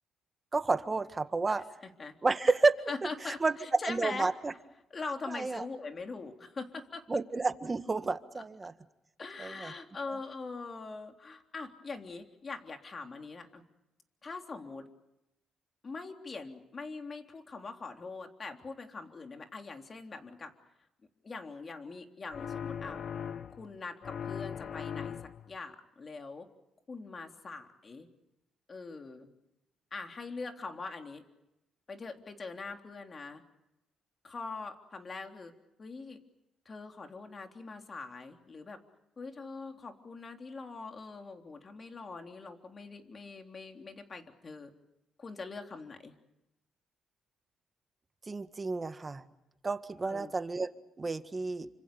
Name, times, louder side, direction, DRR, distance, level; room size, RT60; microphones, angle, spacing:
voice 1, 0.5-1.7 2.2-2.7 3.2-3.6 3.9-4.5 5.3-5.6 7.1-8.7 9.4-9.7 10.1-10.2 48.3-49.2 49.6-50.7 51.0-51.7, right 3 dB, 25° right, 10 dB, 1.7 m, -30 dB
voice 2, 2.9-4.3 4.9-7.0 9.2-13.6 14.2-14.9 15.8-20.5 21.2-23.0 23.6-25.2 25.5-26.5 26.9-28.1 28.7-29.3 29.9-31.2 31.9-33.4 34.2-35.5 35.8-36.2 36.7-38.8 39.2-44.7 45.2-46.2 50.0-50.3, left 4 dB, 35° left, 4 dB, 3.5 m, -42 dB
sound 1, 22.3-23.7 24.0-25.5, left 8 dB, 55° left, 1.0 m, -39 dB
29.0 x 26.0 x 7.1 m, 0.90 s
cardioid pair, 90°, 0 cm